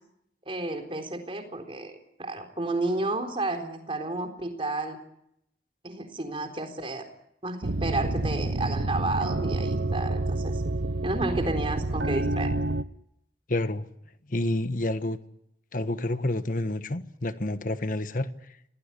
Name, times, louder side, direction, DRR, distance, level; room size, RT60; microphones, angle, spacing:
voice 1, 0.5-5.0 5.8-7.1 7.4-10.6 11.0-12.5, right 2 dB, 30° right, 4.0 m, -31 dB
sound 1, 7.6-12.8, right 2 dB, 85° right, 0.9 m, -28 dB
voice 2, 13.5-13.8 14.3-15.2 15.7-18.3, left 1 dB, 50° left, 1.3 m, -28 dB
26.5 x 18.5 x 10.0 m
head